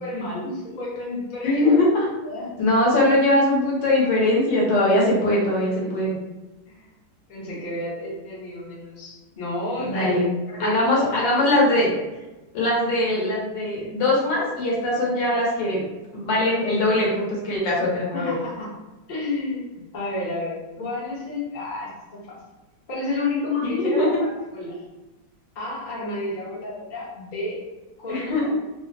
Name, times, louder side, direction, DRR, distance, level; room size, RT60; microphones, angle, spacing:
voice 1, 0.0-1.8 2.2-2.5 5.7-6.2 6.7-6.8 7.3-10.1 10.5-11.1 11.4-11.5 18.1-18.7 19.1-20.5 20.8-21.9 22.3-22.4 22.9-24.7 25.5-27.6 28.0-28.5, left 2 dB, 40° left, -6 dB, 0.7 m, -31 dB
voice 2, 1.4-2.1 2.6-6.2 9.8-10.2 10.6-12.0 12.5-15.8 16.1-18.4 23.6-24.2 28.1-28.4, left 1 dB, 75° left, -4 dB, 1.5 m, -21 dB
3.5 x 2.0 x 2.6 m, 1.1 s
omnidirectional pair, 2.0 m